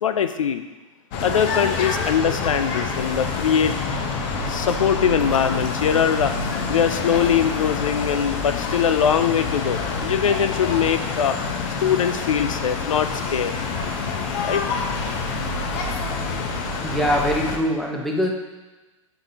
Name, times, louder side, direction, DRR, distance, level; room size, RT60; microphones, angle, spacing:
voice 1, 0.0-0.6 1.2-3.8 4.5-6.3 6.7-11.4 11.8-13.5 14.4-14.6, left 8 dB, 75° left, 9 dB, 0.4 m, -22 dB
sound 1, 1.1-17.6, left 4 dB, 45° left, 0.8 m, -27 dB
voice 2, 16.8-18.3, equal, ahead, -1 dB, 0.9 m, -23 dB
8.0 x 5.0 x 2.8 m, 1.2 s
figure-of-eight pair, 100°, 17 cm